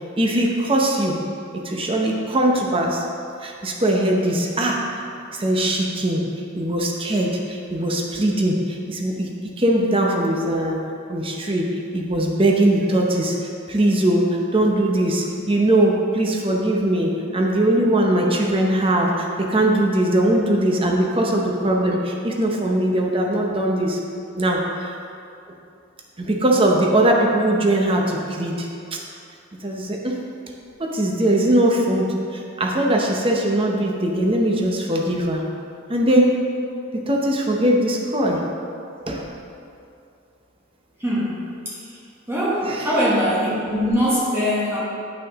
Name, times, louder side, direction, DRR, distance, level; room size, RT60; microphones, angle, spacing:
voice 1, 0.2-1.2 1.5-3.0 3.4-5.0 5.3-6.2 6.5-10.8 11.1-13.4 13.7-24.0 24.3-25.0 26.2-29.0 29.6-30.2 30.8-35.4 35.9-36.3 36.9-38.4 39.1-39.3 42.6-43.0, right 1 dB, 30° right, 0 dB, 0.8 m, -20 dB
voice 2, 41.0-41.8 42.3-44.8, equal, 15° right, -8 dB, 1.3 m, -22 dB
9.3 x 5.8 x 3.6 m, 2.5 s
head